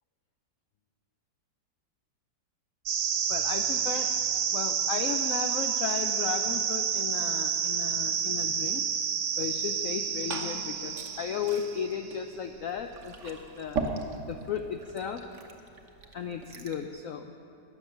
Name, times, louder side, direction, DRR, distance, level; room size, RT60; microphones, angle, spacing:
sound 1, 2.9-12.0, right 7 dB, 70° right, 1.5 m, -29 dB
voice 1, 3.3-4.1 4.5-8.8 9.4-13.8 14.3-15.2 16.1-17.3, left 7 dB, 80° left, 6 dB, 0.7 m, -35 dB
Glass / Fill (with liquid), 9.8-16.9, right 3 dB, 45° right, 1.2 m, -40 dB
20.5 x 7.2 x 6.9 m, 2.9 s
omnidirectional pair, 2.1 m